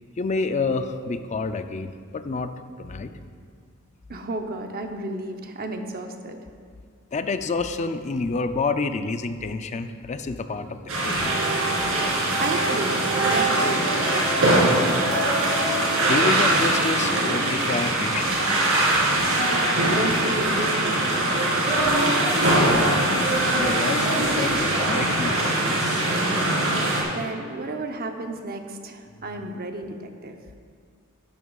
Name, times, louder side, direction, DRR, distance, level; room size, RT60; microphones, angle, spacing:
voice 1, 0.2-2.5 2.8-3.1 7.1-11.4 16.0-18.5 22.3-23.3 23.5-26.0, left 3 dB, 35° left, 9 dB, 0.4 m, -29 dB
voice 2, 4.1-6.4 12.4-14.9 19.8-21.3 27.0-30.4, right 2 dB, 45° right, 5 dB, 0.7 m, -33 dB
sound 1, 10.9-27.0, right 1 dB, 85° right, 2.3 m, -22 dB
sound 2, 11.2-16.8, right 2 dB, 10° right, 1.6 m, -31 dB
11.0 x 11.0 x 2.4 m, 2.1 s
head